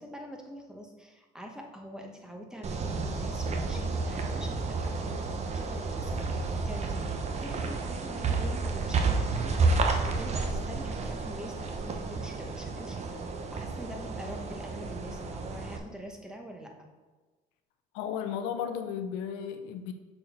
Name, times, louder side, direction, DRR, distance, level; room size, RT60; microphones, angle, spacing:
voice 1, 0.0-7.1 7.4-16.9, equal, 5° right, 1 dB, 1.2 m, -44 dB
sound 1, 2.6-15.8, right 3 dB, 40° right, 0.9 m, -31 dB
voice 2, 17.9-19.9, left 8 dB, 90° left, 8 dB, 0.6 m, -34 dB
6.4 x 4.3 x 4.3 m, 1.3 s
supercardioid pair, 90°, 17 cm